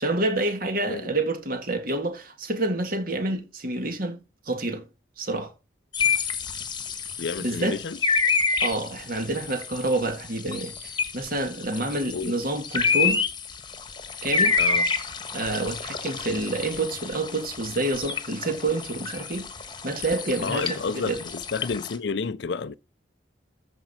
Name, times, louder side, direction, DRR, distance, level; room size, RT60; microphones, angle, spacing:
voice 1, 0.0-4.8 5.2-5.5 7.4-7.8 8.6-13.2 14.2-14.6 15.3-19.5 19.8-21.2, right 2 dB, 50° right, 2.0 m, -28 dB
sound 1, 5.9-22.0, left 5 dB, 25° left, 1.3 m, -28 dB
voice 2, 7.2-8.0 12.1-12.3 14.6-14.9 20.4-22.8, left 5 dB, 60° left, 0.5 m, -30 dB
14.0 x 5.3 x 4.2 m
head